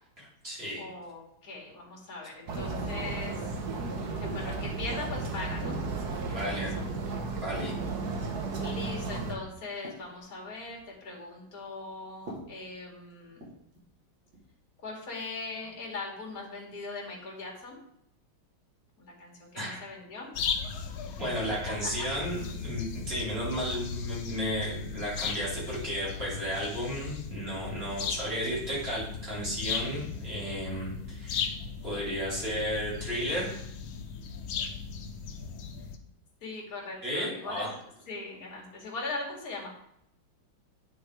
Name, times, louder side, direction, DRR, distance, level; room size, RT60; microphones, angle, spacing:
voice 1, 0.2-0.8 6.2-6.7 7.2-7.7 19.5-19.8 21.2-31.5 31.8-33.6 37.0-37.7, equal, 30° right, -7 dB, 4.2 m, -33 dB
voice 2, 0.8-3.5 4.2-5.8 6.4-6.9 8.6-13.5 14.8-17.8 19.0-20.3 36.4-37.7 38.1-39.7, left 3 dB, 45° left, -3 dB, 2.9 m, -40 dB
sound 1, 2.5-9.3, right 3 dB, 55° right, 1.6 m, -34 dB
sound 2, 3.9-4.4 5.0-5.9 6.6-6.8 7.6-8.7 9.1-9.2 9.6-10.9 12.1-13.9 14.3-14.5 15.6-15.8, right 1 dB, 80° right, 3.4 m, -48 dB
sound 3, 20.3-36.0, left 6 dB, 85° left, 1.7 m, -37 dB
9.3 x 6.2 x 4.8 m, 0.74 s
omnidirectional pair, 2.2 m